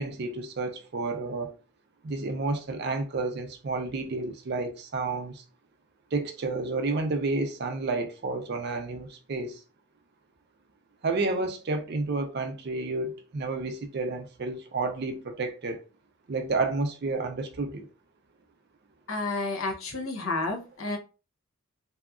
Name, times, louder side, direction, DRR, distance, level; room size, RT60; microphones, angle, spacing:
voice 1, 0.0-1.5 2.0-5.4 6.1-9.6 11.0-15.8 16.3-17.9, right 3 dB, 50° right, 0.4 m, -30 dB
voice 2, 19.1-21.0, left 2 dB, 70° left, 0.7 m, -30 dB
2.7 x 2.4 x 2.3 m
head